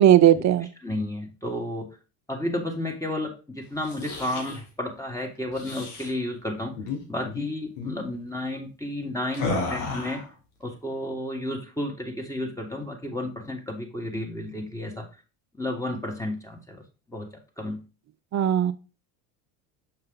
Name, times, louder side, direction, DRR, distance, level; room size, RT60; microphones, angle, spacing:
voice 1, 0.0-0.7 18.3-18.7, right 11 dB, 35° right, 12 dB, 0.8 m, -17 dB
voice 2, 0.8-1.9 2.3-6.7 7.1-10.2 10.6-15.1 15.5-16.8 17.1-17.8, left 1 dB, 5° left, 1 dB, 1.9 m, -32 dB
sound 1, 3.8-4.6 5.5-6.1 6.8-7.0 7.2-7.5 7.8-8.0 9.3-10.3, left 3 dB, 75° left, 2.3 m, -32 dB
6.6 x 5.3 x 4.0 m, 0.32 s
hypercardioid pair, 80°, 46 cm